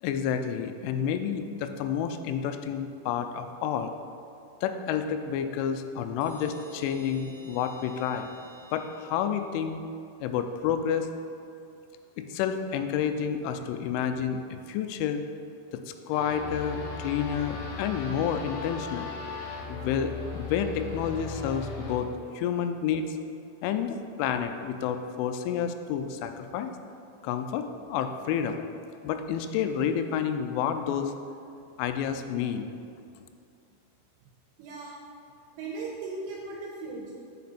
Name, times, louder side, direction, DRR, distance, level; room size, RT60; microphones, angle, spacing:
voice 1, 0.0-3.9 4.6-8.3 8.7-9.8 10.2-11.1 12.2-14.4 14.7-15.2 15.7-19.1 19.7-22.1 22.3-23.2 23.6-26.7 27.2-28.6 29.0-31.1 31.8-32.7, left 8 dB, 90° left, 8 dB, 3.0 m, -29 dB
sound 1, 6.2-9.8, right 1 dB, 55° right, 1.1 m, -51 dB
sound 2, 16.1-22.0, left 4 dB, 70° left, 2.1 m, -37 dB
voice 2, 34.6-35.0 35.5-37.1, right 3 dB, 80° right, -3 dB, 2.9 m, -37 dB
8.5 x 6.1 x 4.1 m, 2.4 s
omnidirectional pair, 5.4 m